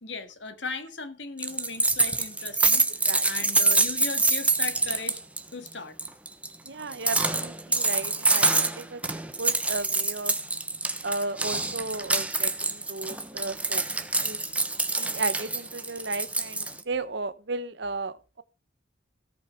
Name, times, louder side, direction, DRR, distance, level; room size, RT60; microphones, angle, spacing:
voice 1, 0.0-2.9 3.2-5.2 5.5-6.0, left 3 dB, 70° left, 1.9 m, -37 dB
sound 1, 1.4-5.4 5.7-5.8 6.0-16.8, right 3 dB, 5° right, 1.1 m, -26 dB
voice 2, 6.6-9.0 9.4-10.3 11.0-14.4 15.0-18.4, right 3 dB, 65° right, 1.0 m, -34 dB
17.5 x 6.0 x 4.5 m
head